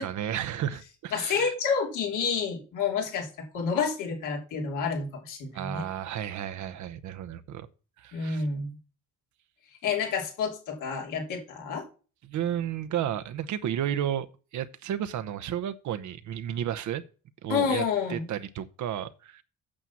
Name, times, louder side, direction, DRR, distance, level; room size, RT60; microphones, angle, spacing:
voice 1, 0.0-1.5 5.5-7.7 8.0-8.5 12.2-14.3 14.5-17.0 17.4-17.8 18.1-19.4, right 10 dB, 70° right, 0.9 m, -32 dB
voice 2, 1.1-5.8 8.1-8.8 9.8-11.9 17.5-18.3, left 6 dB, 85° left, 3.1 m, -29 dB
8.8 x 6.1 x 7.3 m
cardioid pair, 90°, 30 cm